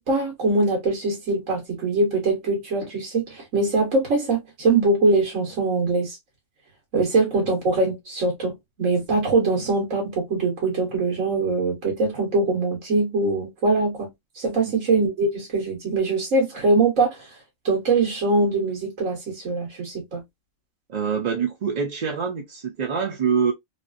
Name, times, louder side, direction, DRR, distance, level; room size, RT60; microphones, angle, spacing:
voice 1, 0.0-6.2 6.9-14.1 14.3-17.3 17.6-20.2, right 3 dB, 90° right, 1.6 m, -22 dB
voice 2, 20.9-23.5, right 6 dB, 50° right, 0.5 m, -25 dB
3.3 x 2.4 x 2.5 m
omnidirectional pair, 1.3 m